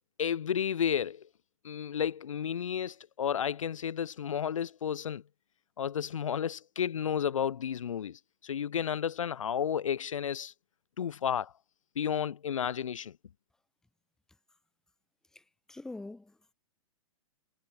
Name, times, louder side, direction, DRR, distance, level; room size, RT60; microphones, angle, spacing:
voice 1, 0.2-1.2 1.6-5.2 5.8-10.5 11.0-11.5 12.0-13.1, left 8 dB, 65° left, 0.4 m, -32 dB
voice 2, 15.7-16.5, left 2 dB, 5° left, 0.6 m, -44 dB
figure-of-eight pair, 110°, 18 cm